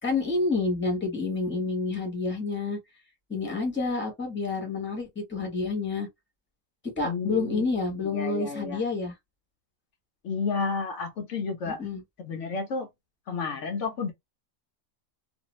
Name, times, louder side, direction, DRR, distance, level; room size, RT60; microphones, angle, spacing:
voice 1, 0.0-2.8 3.3-6.1 7.0-9.1 11.7-12.0, left 3 dB, 10° left, 1.0 m, -29 dB
voice 2, 7.0-7.7 8.1-8.8 10.2-11.8 12.2-12.9 13.3-14.1, left 4 dB, 70° left, 0.9 m, -31 dB
2.5 x 2.3 x 3.0 m
omnidirectional pair, 1.4 m